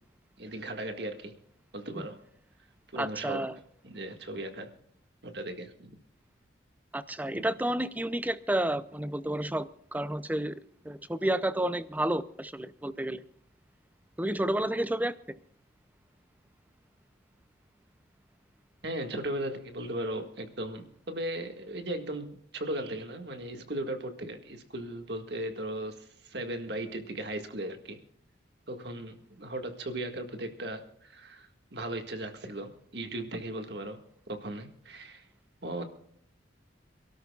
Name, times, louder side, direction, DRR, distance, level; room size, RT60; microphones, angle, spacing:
voice 1, 0.4-1.3 1.7-2.2 2.9-3.4 3.8-4.7 5.2-6.0 7.3-7.4 18.8-28.0 28.7-34.0 34.3-35.3 35.6-35.8, right 1 dB, 60° right, 1.8 m, -37 dB
voice 2, 3.0-3.5 6.9-10.5 10.8-13.2 14.2-15.1, right 1 dB, 10° right, 0.5 m, -30 dB
27.5 x 12.5 x 2.4 m
head